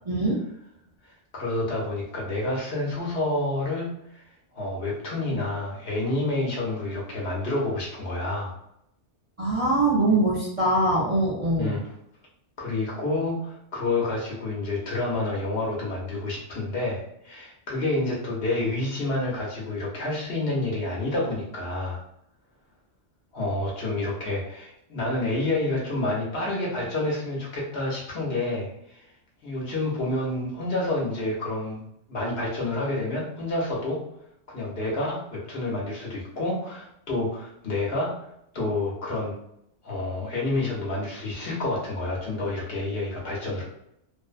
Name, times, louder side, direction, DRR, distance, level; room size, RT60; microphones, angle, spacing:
voice 1, 1.3-4.2 4.5-8.5 11.6-11.8 12.6-22.0 23.3-29.0 29.4-31.8 32.1-34.0 34.5-38.3 38.5-39.3 39.8-43.6, left 2 dB, 60° left, -4 dB, 0.9 m, -29 dB
voice 2, 9.4-11.8, right 2 dB, 40° right, -8 dB, 0.6 m, -23 dB
2.5 x 2.0 x 2.4 m, 0.77 s
omnidirectional pair, 1.2 m